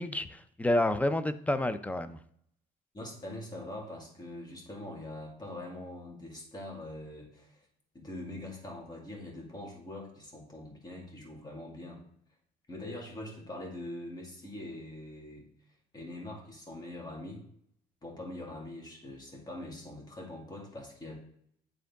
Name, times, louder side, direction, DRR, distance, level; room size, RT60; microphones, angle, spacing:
voice 1, 0.0-2.2, left 1 dB, 10° left, 11 dB, 0.4 m, -29 dB
voice 2, 2.9-7.6 7.9-12.0 12.7-15.5 15.9-17.4 18.0-21.1, left 1 dB, 25° left, 0 dB, 2.1 m, -43 dB
9.4 x 3.7 x 3.5 m, 0.68 s
cardioid pair, 110°, 17 cm